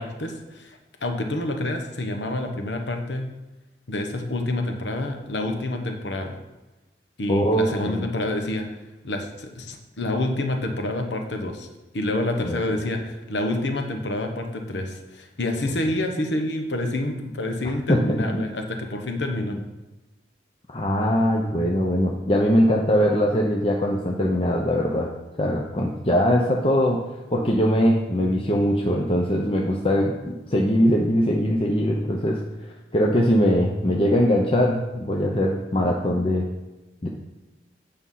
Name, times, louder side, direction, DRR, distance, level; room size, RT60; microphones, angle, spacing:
voice 1, 0.0-3.3 3.9-6.4 7.2-8.7 9.0-11.7 11.9-19.6, left 1 dB, 70° left, 4 dB, 1.2 m, -28 dB
voice 2, 7.3-8.1 12.4-12.6 17.9-18.2 20.7-25.1 25.4-27.0 27.3-32.4 32.9-36.5 37.0-37.1, equal, 30° left, -1 dB, 0.8 m, -21 dB
8.8 x 5.5 x 5.7 m, 1.1 s
head